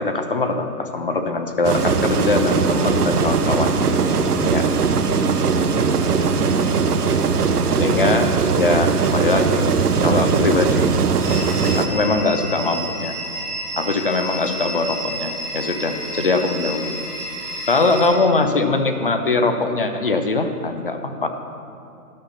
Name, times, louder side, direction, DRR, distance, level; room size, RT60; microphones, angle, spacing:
voice 1, 0.0-3.9 4.4-4.7 7.7-8.3 8.6-9.7 10.0-10.9 11.7-13.2 13.8-16.9 17.7-21.3, left 3 dB, 40° left, 7 dB, 0.5 m, -21 dB
sound 1, 1.6-11.9, right 5 dB, 80° right, 0.9 m, -19 dB
sound 2, 11.2-18.1, right 1 dB, 5° right, 1.2 m, -31 dB
11.5 x 5.8 x 5.5 m, 2.6 s
hypercardioid pair, 175°, 46 cm